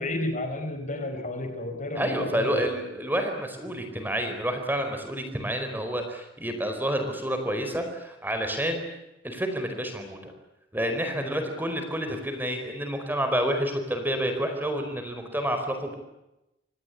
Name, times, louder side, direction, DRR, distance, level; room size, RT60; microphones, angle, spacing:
voice 1, 0.0-2.6 3.7-3.8 11.2-11.3, left 1 dB, 40° left, 7 dB, 4.7 m, -32 dB
voice 2, 1.9-8.8 9.2-10.3 10.7-15.9, equal, 10° right, 6 dB, 4.6 m, -29 dB
27.0 x 19.5 x 9.8 m, 0.93 s
head